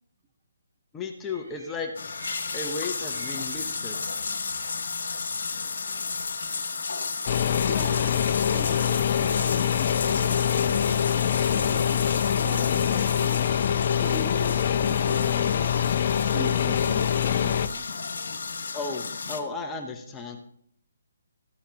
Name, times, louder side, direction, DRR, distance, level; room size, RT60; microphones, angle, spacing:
voice 1, 0.9-2.1 2.5-4.0 18.7-20.4, left 4 dB, 10° left, 3 dB, 0.9 m, -35 dB
sound 1, 1.2-6.7, right 1 dB, 65° right, 4.6 m, -49 dB
sound 2, 2.0-19.4, left 4 dB, 70° left, 1.5 m, -33 dB
sound 3, 7.3-17.7, left 9 dB, 40° left, 0.6 m, -24 dB
voice 2, 7.7-8.2 8.5-10.9 11.5-11.9 12.4-13.4 14.0-15.7 16.3-17.9, right 5 dB, 20° right, 5 dB, 1.1 m, -41 dB
14.0 x 9.9 x 2.9 m, 0.67 s
hypercardioid pair, 155°, 0 cm